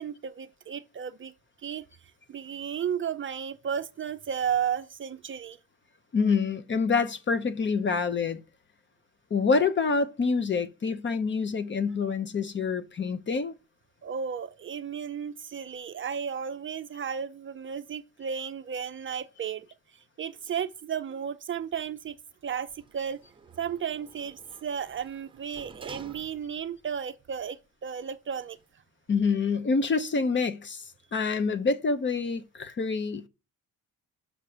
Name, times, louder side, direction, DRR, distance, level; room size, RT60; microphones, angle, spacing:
voice 1, 0.0-1.3 1.6-5.6 14.0-22.2 22.4-23.2 23.6-28.6, right 8 dB, 35° right, 0.5 m, -34 dB
voice 2, 6.1-8.4 9.3-13.6 29.1-33.3, left 4 dB, 35° left, 0.8 m, -27 dB
Sliding door, 22.7-26.8 27.2-27.3, right 5 dB, 15° right, 1.1 m, -51 dB
6.6 x 5.8 x 4.9 m
cardioid pair, 125°, 35 cm